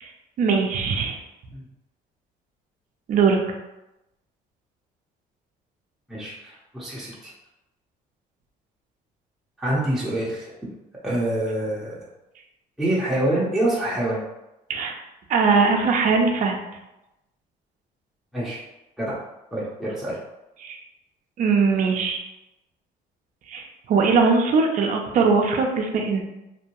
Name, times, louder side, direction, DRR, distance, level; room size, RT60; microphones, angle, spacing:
voice 1, 0.4-1.2 3.1-3.4 14.7-14.9 15.3-16.6 20.6-20.8 21.4-22.2 23.5-26.2, right 4 dB, 50° right, 2 dB, 0.5 m, -20 dB
voice 2, 6.1-7.3 9.6-10.6 11.0-12.1 12.8-14.2 18.3-18.6 19.0-19.1 19.5-20.2, right 1 dB, ahead, -8 dB, 0.7 m, -26 dB
2.6 x 2.1 x 2.9 m, 0.93 s
cardioid pair, 110°, 17 cm